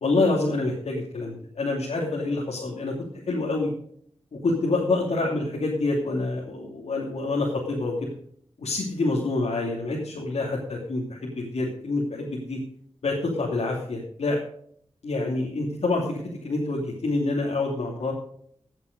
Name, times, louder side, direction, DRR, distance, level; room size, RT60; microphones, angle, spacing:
voice 1, 0.0-2.9 3.2-3.7 4.4-8.1 8.6-12.6 13.0-14.4 15.0-18.1, left 2 dB, 80° left, -3 dB, 2.6 m, -27 dB
16.5 x 8.1 x 5.2 m, 0.63 s
wide cardioid pair, 135°, 11 cm